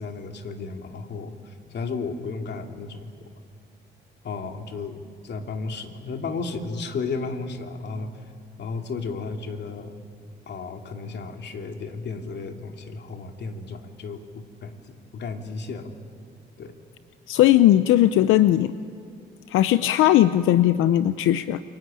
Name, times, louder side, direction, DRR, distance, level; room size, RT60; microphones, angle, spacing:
voice 1, 0.0-3.1 4.2-8.1 8.6-9.9 10.5-14.7 15.1-15.9 16.6-16.7, left 4 dB, 60° left, 4 dB, 2.7 m, -33 dB
voice 2, 17.3-18.7 19.5-21.6, left 13 dB, 90° left, 12 dB, 0.7 m, -18 dB
28.0 x 23.5 x 8.9 m, 2.3 s
cardioid pair, 90°, 20 cm